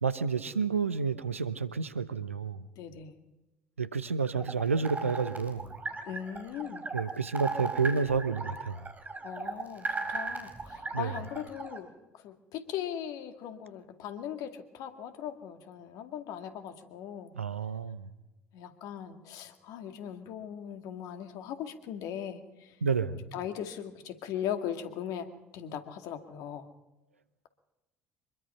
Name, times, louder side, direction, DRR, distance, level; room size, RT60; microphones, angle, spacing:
voice 1, 0.0-2.6 3.8-5.6 6.9-8.8 10.9-11.1 17.3-18.1 22.8-23.2, right 5 dB, 85° right, 14 dB, 0.9 m, -30 dB
voice 2, 2.8-3.1 6.1-7.0 9.2-17.3 18.5-22.8 23.3-26.7, left 9 dB, 60° left, 8 dB, 2.1 m, -39 dB
sound 1, 4.2-11.8, right 3 dB, 25° right, 4.6 m, -37 dB
25.0 x 22.0 x 5.6 m, 1.0 s
figure-of-eight pair, 55°, 7 cm